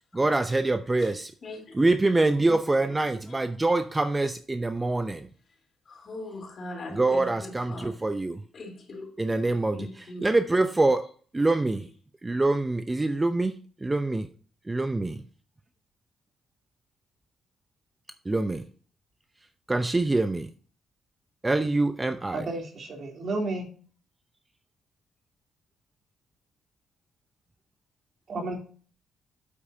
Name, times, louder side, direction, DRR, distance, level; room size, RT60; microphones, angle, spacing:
voice 1, 0.1-1.3 1.7-5.3 6.9-8.4 9.2-9.8 10.2-11.0 11.3-11.9 12.2-13.5 13.8-14.3 14.7-15.2 18.3-18.6 19.7-20.5 21.4-22.5, right 2 dB, 15° right, 0.6 m, -25 dB
voice 2, 1.4-1.9 2.3-2.4 3.3-3.7 4.9-5.1 5.9-8.0 8.5-10.3 11.6-11.7, left 2 dB, 45° left, 3.6 m, -42 dB
voice 3, 22.3-23.7 28.3-28.6, right 2 dB, 50° right, 3.2 m, -32 dB
8.4 x 7.4 x 2.8 m
cardioid pair, 90°, 0 cm